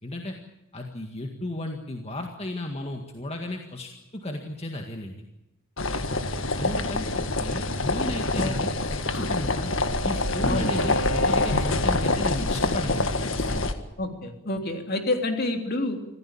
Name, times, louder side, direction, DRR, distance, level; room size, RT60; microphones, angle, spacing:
voice 1, 0.0-0.4 0.7-5.1 6.5-8.7 9.1-9.7 10.0-13.7, left 1 dB, 30° left, 3 dB, 1.9 m, -34 dB
sound 1, 5.8-13.7, left 2 dB, 70° left, 1.8 m, -26 dB
Bowed string instrument, 8.5-12.1, equal, 85° left, 3.7 m, -35 dB
voice 2, 14.0-16.0, left 2 dB, 50° left, 4 dB, 3.4 m, -28 dB
25.5 x 16.0 x 8.7 m, 0.92 s
head